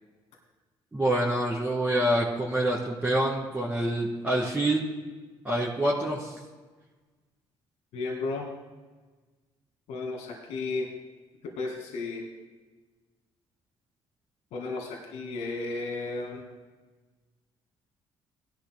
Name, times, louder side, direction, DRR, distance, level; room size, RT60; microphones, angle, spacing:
voice 1, 0.9-4.8 5.4-6.3, right 1 dB, 15° right, -5 dB, 2.3 m, -26 dB
voice 2, 7.9-8.5 9.9-10.9 11.4-12.3 14.5-16.5, left 3 dB, 85° left, 0 dB, 2.1 m, -33 dB
18.0 x 11.5 x 2.2 m, 1.3 s
cardioid pair, 100°, 11 cm